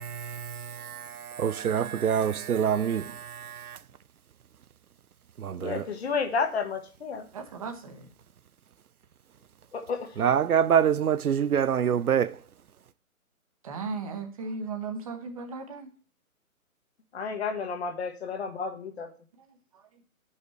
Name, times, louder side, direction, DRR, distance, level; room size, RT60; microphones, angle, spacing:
voice 1, 0.0-3.8 5.4-5.9 10.2-12.4, right 8 dB, 85° right, 0.6 m, -26 dB
voice 2, 5.6-7.3 9.7-10.1 17.1-19.1, left 5 dB, 45° left, 1.3 m, -31 dB
voice 3, 7.3-8.1 13.6-15.9, right 4 dB, 25° right, 0.9 m, -36 dB
11.0 x 5.5 x 3.2 m
figure-of-eight pair, 145°, 43 cm